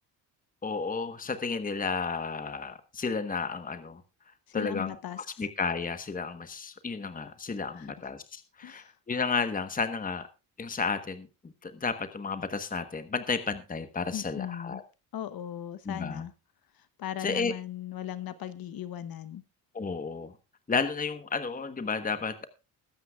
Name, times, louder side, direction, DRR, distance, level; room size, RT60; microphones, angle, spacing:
voice 1, 0.6-4.0 4.5-10.3 10.6-11.3 11.6-14.8 15.8-16.3 17.2-17.5 19.7-20.3 20.7-22.5, left 4 dB, 20° left, 11 dB, 1.2 m, -32 dB
voice 2, 4.5-5.2 7.7-7.9 8.6-8.9 14.1-14.8 15.1-16.3 17.0-19.4, left 11 dB, 60° left, 13 dB, 1.0 m, -38 dB
21.0 x 9.0 x 2.4 m, 0.30 s
cardioid pair, 95°, 40 cm